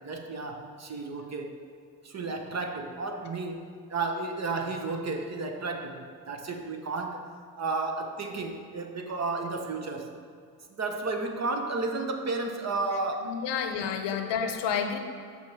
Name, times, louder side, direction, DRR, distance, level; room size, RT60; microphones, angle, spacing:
voice 1, 0.0-1.6 2.0-7.2 7.6-10.1 10.7-13.3, right 3 dB, 30° right, 4 dB, 0.9 m, -32 dB
voice 2, 13.2-15.0, left 7 dB, 55° left, 6 dB, 0.9 m, -30 dB
6.6 x 5.5 x 4.6 m, 2.3 s
hypercardioid pair, 70°, 50 cm